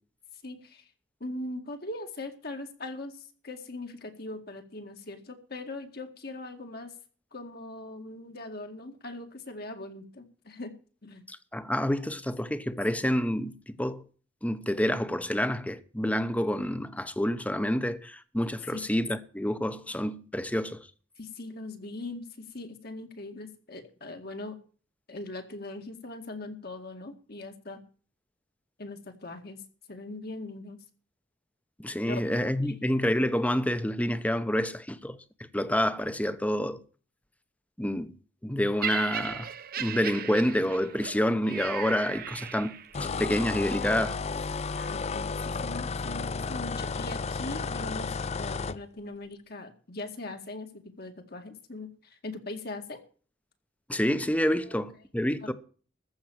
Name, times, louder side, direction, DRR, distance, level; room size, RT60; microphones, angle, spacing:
voice 1, 0.4-0.9 1.2-6.9 7.3-10.7 11.0-11.3 18.7-18.8 21.2-24.5 25.1-27.8 28.8-29.6 29.9-30.8 32.0-32.2 44.8-53.0 54.7-54.8, left 2 dB, 55° left, 2.1 m, -40 dB
voice 2, 11.3-14.0 14.4-20.9 31.8-35.2 35.5-36.8 37.8-38.1 38.4-39.5 39.8-44.2 53.9-55.5, equal, 10° left, 0.9 m, -28 dB
Laughter, 38.8-43.1 43.9-44.0, right 8 dB, 55° right, 0.9 m, -37 dB
sound 1, 42.9-48.8, left 4 dB, 35° left, 0.5 m, -33 dB
14.5 x 6.1 x 8.6 m
head